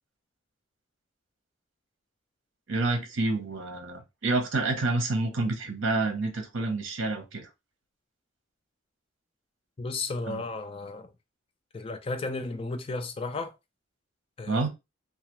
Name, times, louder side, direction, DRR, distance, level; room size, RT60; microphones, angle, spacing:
voice 1, 2.7-7.5 10.3-10.4 14.5-14.7, right 2 dB, 70° right, 0.7 m, -28 dB
voice 2, 9.8-11.1 11.7-13.5 14.4-14.7, left 3 dB, 30° left, 0.3 m, -34 dB
2.3 x 2.3 x 2.9 m
head